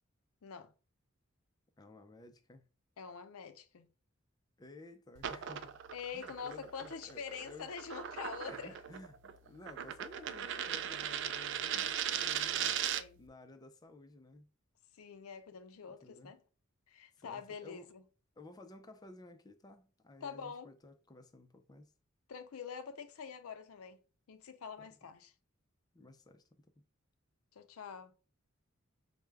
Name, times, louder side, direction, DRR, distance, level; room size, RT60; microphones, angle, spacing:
voice 1, 0.4-0.7 3.0-3.9 5.9-8.7 12.1-12.2 12.7-13.2 14.9-16.4 16.9-18.0 20.2-20.7 22.3-24.0 24.3-25.3 27.5-28.1, left 6 dB, 90° left, 0.5 m, -45 dB
voice 2, 1.8-2.7 4.6-5.8 6.1-7.7 8.5-14.5 15.9-16.3 17.2-17.9 18.4-21.9 24.8-24.9 25.9-26.8, left 2 dB, 20° left, 0.4 m, -55 dB
sound 1, 5.2-13.2, right 9 dB, 55° right, 0.3 m, -38 dB
4.6 x 2.1 x 3.3 m
head